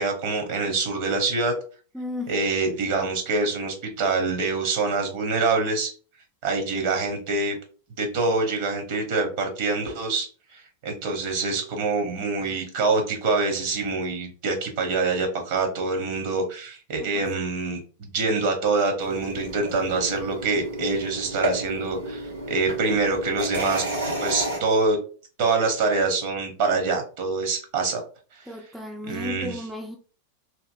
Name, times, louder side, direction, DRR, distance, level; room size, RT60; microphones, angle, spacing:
voice 1, 0.0-1.5 2.3-5.9 6.4-7.6 8.0-25.0 25.4-28.0 29.1-29.5, right 3 dB, 45° right, 1.0 m, -25 dB
voice 2, 1.9-2.3 17.0-17.2 28.5-30.0, left 2 dB, ahead, 0.4 m, -34 dB
sound 1, 19.0-24.6, right 1 dB, 80° right, 1.0 m, -31 dB
2.9 x 2.6 x 2.5 m
figure-of-eight pair, 90°, 0 cm